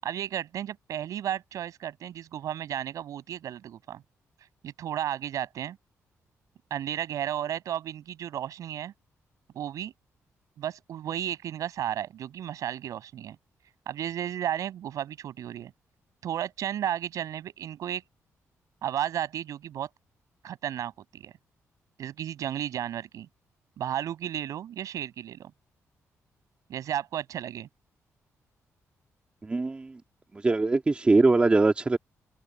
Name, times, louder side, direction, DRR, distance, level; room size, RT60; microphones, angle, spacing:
voice 1, 0.0-4.0 4.6-5.8 6.7-8.9 9.5-9.9 10.6-13.4 13.9-15.7 16.2-18.0 18.8-19.9 20.4-21.3 22.0-23.3 23.8-25.5 26.7-27.7, right 10 dB, 80° right, 7.1 m, -33 dB
voice 2, 29.4-30.0 30.3-32.0, right 3 dB, 20° right, 2.1 m, -22 dB
open air
wide cardioid pair, 150°, 6 cm